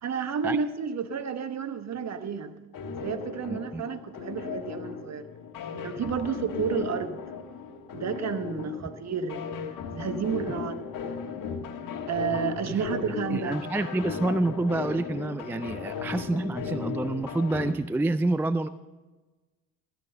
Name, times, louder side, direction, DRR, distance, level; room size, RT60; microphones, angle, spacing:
voice 1, 0.0-2.6 3.0-5.3 5.8-7.2 7.9-9.4 9.9-10.8 12.1-13.7, right 6 dB, 40° right, 11 dB, 1.1 m, -31 dB
sound 1, 2.7-17.7, left 6 dB, 55° left, 1.4 m, -36 dB
voice 2, 3.5-3.8 12.7-12.8 13.3-18.7, right 2 dB, 5° right, 14 dB, 0.3 m, -28 dB
14.0 x 6.3 x 6.6 m, 1.2 s
hypercardioid pair, 55°, 40 cm